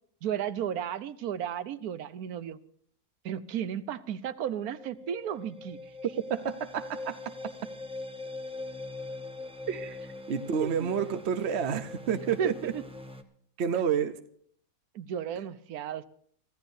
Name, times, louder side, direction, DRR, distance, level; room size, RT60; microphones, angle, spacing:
voice 1, 0.2-2.6 3.2-5.9 10.6-10.9 12.4-12.8 14.9-16.1, right 9 dB, 70° right, 14 dB, 1.2 m, -34 dB
sound 1, 4.5-13.2, left 2 dB, 5° right, 0.8 m, -42 dB
voice 2, 6.3-7.2 9.7-12.7 13.6-14.1, right 7 dB, 55° right, 10 dB, 0.8 m, -30 dB
24.5 x 14.5 x 2.7 m, 0.62 s
omnidirectional pair, 1.7 m